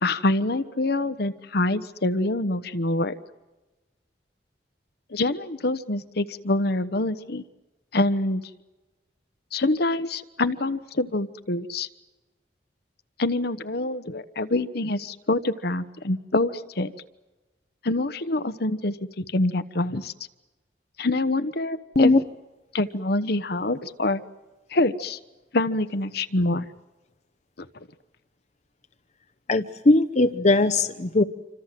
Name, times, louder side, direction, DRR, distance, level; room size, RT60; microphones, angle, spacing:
voice 1, 0.0-3.1 5.1-7.4 7.9-8.4 9.5-11.9 13.2-16.9 17.8-20.1 21.0-22.1 22.7-24.2 24.7-25.2 25.5-26.6 27.6-27.7, left 2 dB, 65° left, 11 dB, 1.1 m, -25 dB
voice 2, 29.5-31.2, left 2 dB, 40° left, 8 dB, 0.9 m, -19 dB
27.5 x 26.0 x 7.6 m, 1.1 s
head